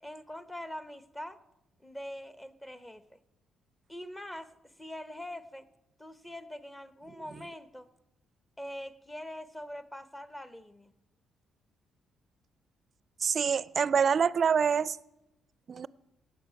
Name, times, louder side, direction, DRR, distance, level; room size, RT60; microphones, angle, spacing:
voice 1, 0.0-1.4 1.8-3.2 3.9-5.7 6.0-7.9 8.6-10.9, left 1 dB, 10° left, 0.9 m, -43 dB
voice 2, 13.2-15.0 15.7-15.9, right 6 dB, 45° right, 0.4 m, -26 dB
18.0 x 7.1 x 5.7 m
cardioid pair, 90°, 0 cm